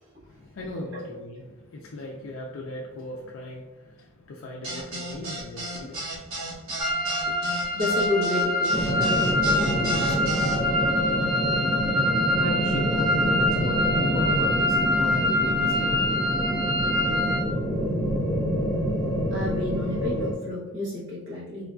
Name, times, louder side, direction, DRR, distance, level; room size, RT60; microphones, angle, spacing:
voice 1, 0.2-7.6 11.9-16.6, left 1 dB, 70° left, -1 dB, 0.4 m, -37 dB
sound 1, 4.6-10.6, right 1 dB, 90° right, 1.2 m, -34 dB
sound 2, 6.8-17.4, left 1 dB, 20° right, 0.4 m, -25 dB
voice 2, 7.7-10.6 19.3-21.7, left 1 dB, 65° right, -6 dB, 1.1 m, -31 dB
sound 3, 8.7-20.3, equal, 45° right, 0.8 m, -27 dB
3.7 x 2.4 x 2.3 m, 1.2 s
head